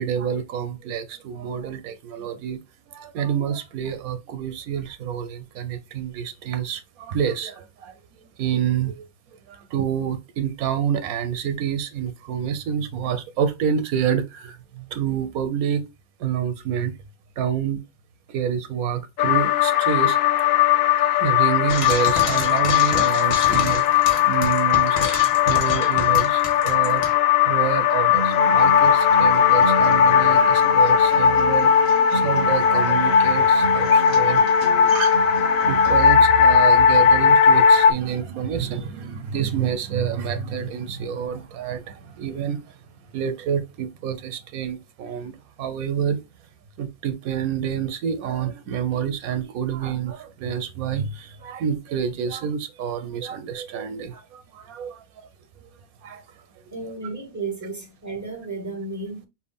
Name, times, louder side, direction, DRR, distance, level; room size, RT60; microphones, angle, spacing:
voice 1, 0.0-2.6 2.9-7.9 8.4-9.1 9.5-15.9 16.2-16.9 17.4-17.8 18.3-20.2 21.1-23.8 24.3-27.1 27.4-34.4 35.7-42.7 43.1-46.2 46.8-55.0 56.0-56.2, right 8 dB, 85° right, 1.2 m, -28 dB
sound 1, 19.2-37.9, left 7 dB, 70° left, 0.9 m, -18 dB
Frying (food), 21.7-27.1, left 3 dB, 85° left, 1.6 m, -30 dB
Acoustic guitar, 28.1-36.1, right 4 dB, 55° right, 1.9 m, -32 dB
voice 2, 56.7-59.3, right 3 dB, 15° right, 1.3 m, -33 dB
6.0 x 2.2 x 3.5 m
omnidirectional pair, 1.5 m